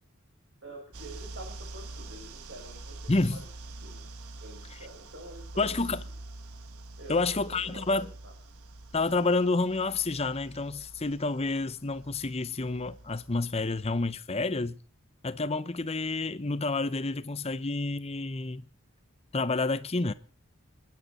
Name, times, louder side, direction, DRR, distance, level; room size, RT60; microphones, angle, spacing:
voice 1, 0.6-3.5 3.8-4.1 4.4-5.9 7.0-8.3, right 1 dB, 55° right, 5.7 m, -47 dB
sound 1, 0.9-14.2, right 2 dB, 80° right, 1.3 m, -46 dB
voice 2, 3.1-3.4 5.6-6.0 7.1-8.1 8.9-14.8 15.2-18.7 19.3-20.1, left 3 dB, 25° left, 0.7 m, -29 dB
29.0 x 10.5 x 4.2 m
head